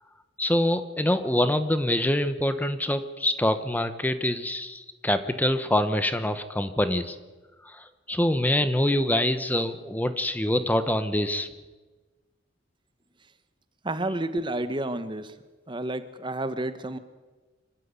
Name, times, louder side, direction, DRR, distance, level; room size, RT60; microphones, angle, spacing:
voice 1, 0.4-7.2 7.6-11.5, left 1 dB, 10° left, 11 dB, 1.0 m, -25 dB
voice 2, 13.8-15.3 15.7-17.0, right 1 dB, 25° right, 11 dB, 1.0 m, -30 dB
25.0 x 12.0 x 9.6 m, 1.3 s
head